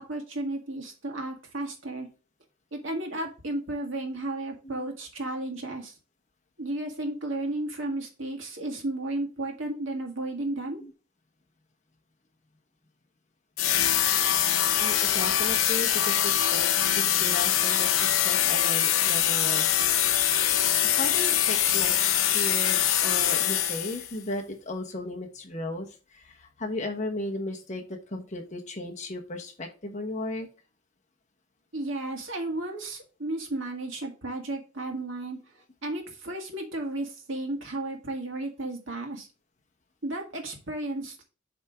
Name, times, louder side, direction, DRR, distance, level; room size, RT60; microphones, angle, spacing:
voice 1, 0.0-2.1 2.7-5.9 6.6-10.8 31.7-35.4 35.8-39.3 40.0-41.2, right 2 dB, 65° right, 2 dB, 1.9 m, -33 dB
sound 1, 13.6-24.1, left 10 dB, 80° left, 0.8 m, -24 dB
voice 2, 14.8-16.7 17.0-19.7 20.8-30.5, left 2 dB, 35° left, 2 dB, 1.2 m, -35 dB
7.5 x 3.6 x 4.9 m, 0.34 s
head